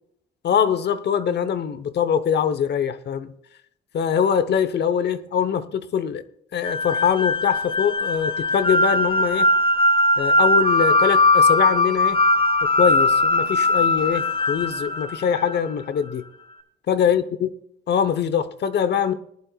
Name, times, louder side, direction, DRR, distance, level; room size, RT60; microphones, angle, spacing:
voice 1, 0.4-3.3 3.9-6.2 6.5-9.5 10.2-12.2 12.6-16.2 16.9-17.5 17.9-19.1, left 8 dB, 60° left, 1.0 m, -23 dB
sound 1, 6.6-15.8, left 2 dB, 25° left, 2.4 m, -20 dB
19.5 x 11.0 x 2.4 m
cardioid pair, 90°, 20 cm